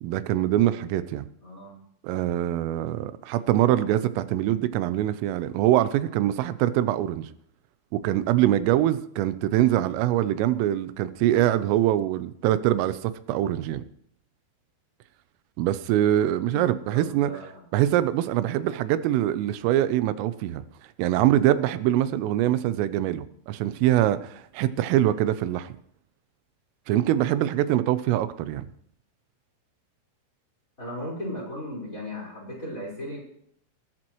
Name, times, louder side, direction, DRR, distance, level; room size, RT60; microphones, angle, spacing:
voice 1, 0.0-1.3 2.0-7.3 7.9-13.8 15.6-17.3 17.7-20.6 21.0-25.7 26.9-28.7, right 13 dB, 90° right, 13 dB, 3.3 m, -24 dB
voice 2, 1.4-1.8 3.6-3.9 16.5-17.6 30.8-33.2, left 1 dB, 15° left, -2 dB, 4.4 m, -37 dB
20.5 x 12.0 x 3.1 m, 0.67 s
omnidirectional pair, 5.7 m